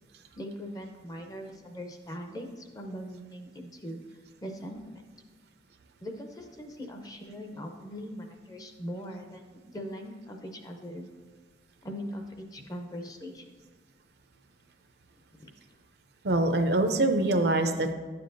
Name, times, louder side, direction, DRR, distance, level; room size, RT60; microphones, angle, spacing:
voice 1, 0.3-4.0 4.4-5.0 6.0-11.1 11.8-13.5 15.4-15.5, equal, 20° left, 4 dB, 0.6 m, -41 dB
voice 2, 16.2-17.9, right 2 dB, 65° right, 6 dB, 0.6 m, -24 dB
9.8 x 6.8 x 2.6 m, 1.4 s
head